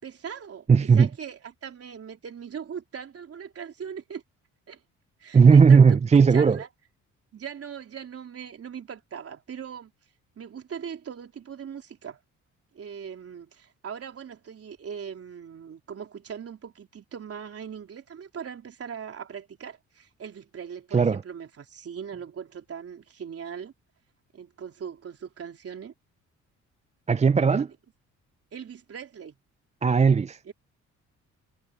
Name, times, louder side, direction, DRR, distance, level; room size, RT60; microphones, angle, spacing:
voice 1, 0.0-4.2 4.7-4.8 5.2-6.7 7.3-9.9 10.4-12.2 12.7-23.7 24.3-25.9 27.5-27.7 28.5-29.4 30.5-30.6, right 7 dB, 50° right, 3.7 m, -40 dB
voice 2, 0.7-1.1 5.3-6.6 20.9-21.2 27.1-27.7 29.8-30.5, right 5 dB, 20° right, 0.5 m, -17 dB
cardioid pair, 90°, 30 cm